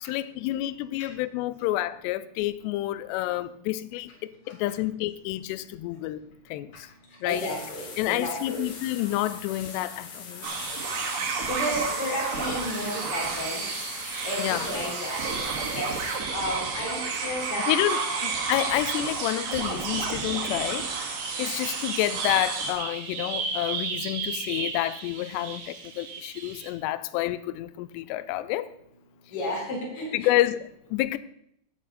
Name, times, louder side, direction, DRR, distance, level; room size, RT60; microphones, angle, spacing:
voice 1, 0.0-6.2 6.5-6.9 7.2-7.5 8.0-10.5 14.4-14.7 17.7-20.8 21.1-28.7 30.1-31.2, left 15 dB, 85° left, 2.5 m, -29 dB
voice 2, 7.2-8.6 11.5-13.6 14.2-15.5 15.7-18.2 29.3-30.3, left 1 dB, 30° left, 4.3 m, -33 dB
sound 1, 7.3-16.2, left 4 dB, 50° left, 2.5 m, -42 dB
sound 2, 10.4-22.7, right 4 dB, 65° right, 4.1 m, -31 dB
Bird vocalization bird call bird song, 18.3-26.7, right 5 dB, 80° right, 4.2 m, -35 dB
16.0 x 8.5 x 4.1 m
omnidirectional pair, 5.5 m